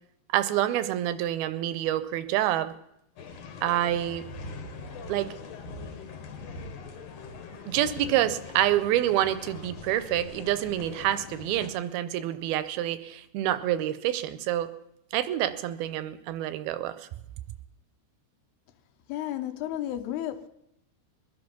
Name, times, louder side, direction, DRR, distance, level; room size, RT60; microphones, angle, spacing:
voice 1, 0.3-2.7 3.6-4.2 5.1-5.3 7.7-14.7 15.1-17.0, right 12 dB, 80° right, 2.5 m, -27 dB
sound 1, 3.2-11.7, left 4 dB, 60° left, 2.9 m, -42 dB
voice 2, 19.1-20.5, left 12 dB, 85° left, 2.9 m, -32 dB
22.0 x 10.5 x 6.0 m
omnidirectional pair, 4.6 m